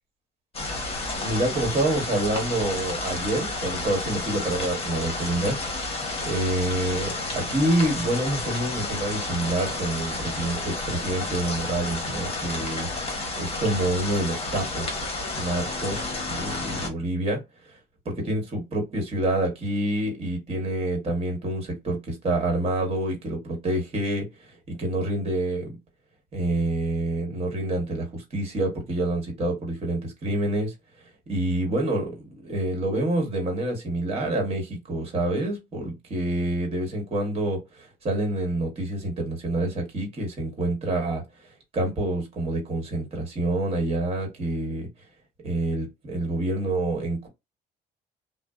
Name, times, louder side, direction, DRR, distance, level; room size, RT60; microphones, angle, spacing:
sound 1, 0.5-16.9, left 2 dB, 35° left, 0.9 m, -31 dB
voice 1, 1.2-12.9 13.4-17.8 18.0-25.8 26.3-30.7 31.3-41.2 41.7-44.9 45.4-47.3, right 1 dB, 35° right, 1.2 m, -27 dB
2.6 x 2.0 x 2.3 m
cardioid pair, 110°, 17 cm